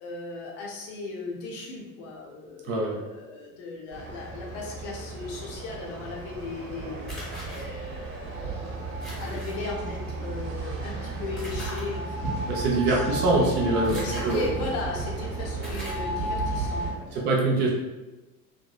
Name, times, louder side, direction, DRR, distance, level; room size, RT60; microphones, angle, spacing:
voice 1, 0.0-13.2 13.9-17.6, left 3 dB, 30° left, -1 dB, 0.6 m, -37 dB
sound 1, 3.9-16.9, right 2 dB, 60° right, 0.8 m, -33 dB
sound 2, 7.1-7.6 9.0-9.6 11.4-11.8 13.8-14.5 15.1-15.2 15.6-16.1, equal, ahead, 1.1 m, -39 dB
voice 2, 12.5-14.0 14.2-14.5 17.1-17.7, right 2 dB, 25° right, -2 dB, 0.4 m, -23 dB
2.7 x 2.2 x 2.3 m, 1.1 s
figure-of-eight pair, 80°, 47 cm